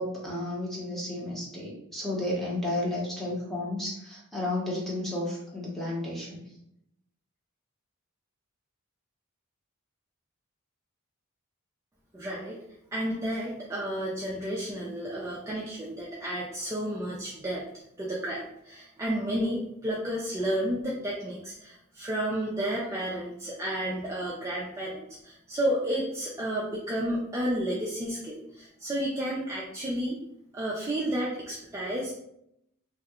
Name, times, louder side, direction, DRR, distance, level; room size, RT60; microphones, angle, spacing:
voice 1, 0.0-6.4, left 1 dB, ahead, -5 dB, 0.8 m, -32 dB
voice 2, 12.1-12.6 12.9-17.6 18.0-30.2 30.5-32.1, right 1 dB, 15° right, -5 dB, 0.4 m, -31 dB
2.8 x 2.2 x 3.5 m, 0.79 s
head